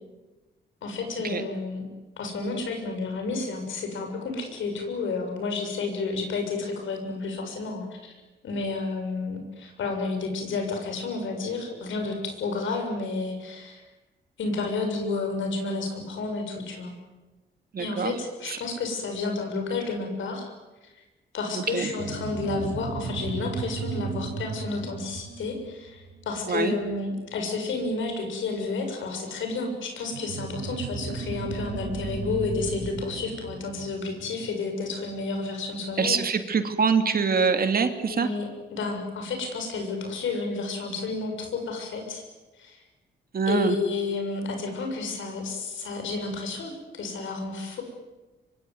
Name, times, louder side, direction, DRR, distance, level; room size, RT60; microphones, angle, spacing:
voice 1, 0.8-1.9 2.2-8.1 8.4-13.8 14.4-16.9 17.8-20.5 20.9-21.0 21.3-36.2 38.1-42.2 42.6-42.8 43.5-47.8, left 3 dB, 80° left, 4 dB, 7.0 m, -31 dB
voice 2, 17.7-18.1 18.5-18.6 21.5-21.9 26.5-26.7 36.0-38.3 43.3-43.8, right 5 dB, 50° right, 7 dB, 2.8 m, -24 dB
sound 1, 21.8-26.8 30.1-35.0, right 5 dB, 80° right, 5.8 m, -35 dB
24.5 x 24.5 x 9.7 m, 1.2 s
cardioid pair, 95°, 20 cm